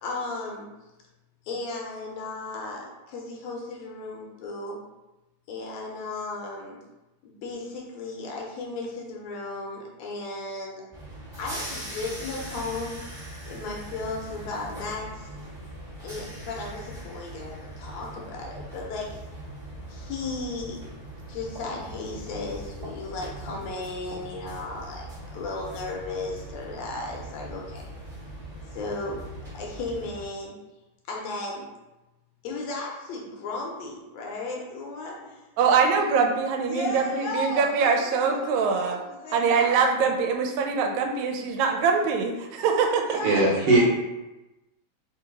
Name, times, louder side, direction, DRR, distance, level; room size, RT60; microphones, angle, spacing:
voice 1, 0.0-0.7 1.5-4.8 5.5-6.8 7.2-10.8 11.4-12.9 13.5-15.3 16.0-19.1 19.9-20.8 21.3-27.9 28.7-29.2 29.5-30.5 31.1-31.6 32.4-35.4 36.6-39.7 42.7-43.9, left 3 dB, 75° left, 1.8 m, -35 dB
sound 1, 10.9-30.3, right 1 dB, 35° right, 0.7 m, -41 dB
voice 2, 35.6-39.0 39.3-43.2, right 5 dB, 85° right, 2.0 m, -23 dB
voice 3, 43.2-43.9, right 2 dB, 65° right, 1.6 m, -19 dB
4.6 x 2.8 x 3.8 m
omnidirectional pair, 3.3 m